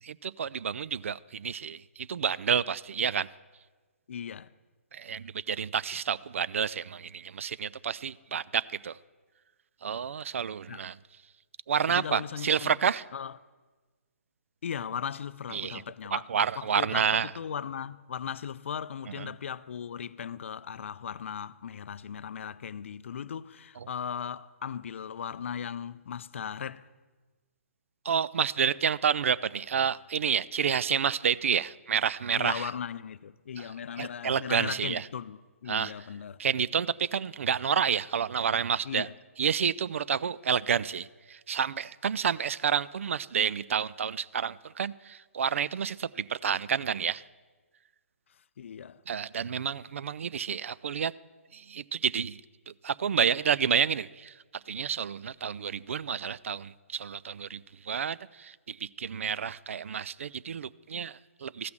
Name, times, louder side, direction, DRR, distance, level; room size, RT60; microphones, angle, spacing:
voice 1, 0.0-3.3 4.9-9.0 9.8-11.0 11.7-13.0 15.5-15.8 16.1-17.3 19.2-19.3 28.0-32.7 33.6-33.7 34.0-35.1 35.7-35.9 36.4-39.1 39.4-47.2 49.1-51.1 51.5-52.4 52.7-54.4 54.7-61.7, right 7 dB, 65° right, 0.3 m, -29 dB
voice 2, 4.1-4.5 10.7-10.8 11.9-12.8 13.1-13.3 14.6-16.2 16.6-26.9 32.4-36.4 38.8-39.1 48.6-49.0, left 8 dB, 60° left, 0.4 m, -37 dB
14.0 x 5.9 x 7.3 m
figure-of-eight pair, 140°, 8 cm